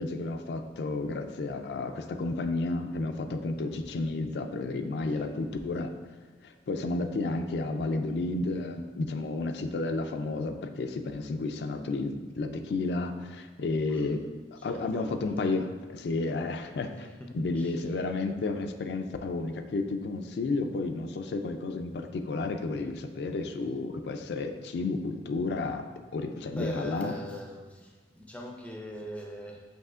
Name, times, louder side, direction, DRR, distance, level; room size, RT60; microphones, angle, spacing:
voice 1, 0.0-5.9 6.4-14.2 14.5-17.1 17.3-25.9 26.1-27.1, left 3 dB, 75° left, 6 dB, 0.4 m, -32 dB
voice 2, 14.6-15.2 17.0-17.8 26.5-29.6, equal, 10° left, 0 dB, 0.4 m, -42 dB
7.8 x 2.8 x 2.4 m, 1.3 s
head